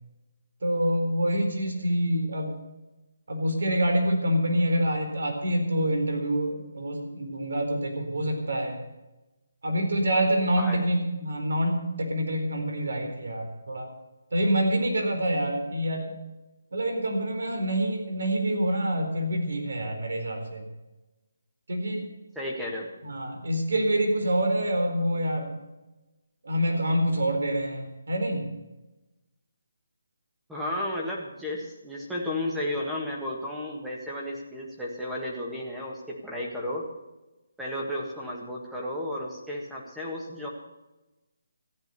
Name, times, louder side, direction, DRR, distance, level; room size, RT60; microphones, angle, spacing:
voice 1, 0.6-2.5 3.3-8.8 9.6-13.9 14.3-16.2 16.7-20.7 21.7-22.1 23.0-25.6 26.4-28.5, right 1 dB, 75° right, 3 dB, 4.3 m, -26 dB
voice 2, 10.6-10.9 22.4-22.9 30.5-36.9 37.6-40.5, left 1 dB, 5° right, -3 dB, 1.7 m, -33 dB
14.5 x 10.5 x 6.9 m, 1.1 s
hypercardioid pair, 170°, 0 cm